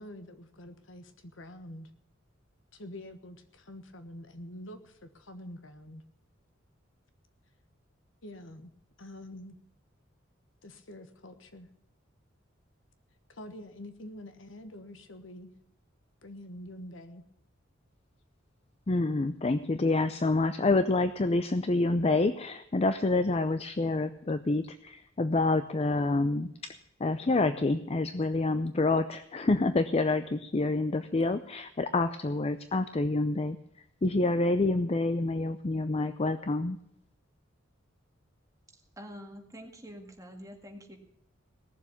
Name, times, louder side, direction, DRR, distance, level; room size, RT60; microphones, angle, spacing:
voice 1, 0.0-1.9 2.7-6.0 8.2-8.7 9.0-9.6 10.6-11.7 13.3-15.5 16.2-17.2, left 1 dB, 70° left, 9 dB, 1.3 m, -46 dB
voice 2, 18.9-26.7 27.0-33.6 34.0-36.8, left 2 dB, 30° left, 11 dB, 0.5 m, -27 dB
voice 3, 38.7-41.0, equal, 15° right, 2 dB, 2.0 m, -46 dB
18.0 x 7.3 x 8.5 m, 0.75 s
head